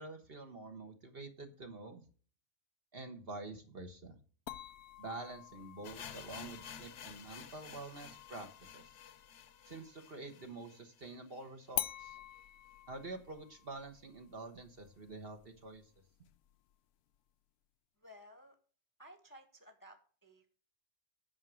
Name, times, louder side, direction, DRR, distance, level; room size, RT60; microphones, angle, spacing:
voice 1, 0.0-2.0 2.9-4.2 5.0-8.9 9.6-12.2 12.9-15.9, right 2 dB, 40° right, 6 dB, 1.4 m, -47 dB
sound 1, 4.5-10.1 11.7-16.7, left 13 dB, 90° left, 1.1 m, -47 dB
sound 2, 5.8-11.8 12.0-12.1 12.4-12.5 13.0-13.1, left 8 dB, 60° left, 1.0 m, -52 dB
voice 2, 18.0-18.6 19.0-20.5, equal, 15° left, 6 dB, 1.0 m, -57 dB
9.5 x 5.9 x 6.1 m, 0.42 s
omnidirectional pair, 1.6 m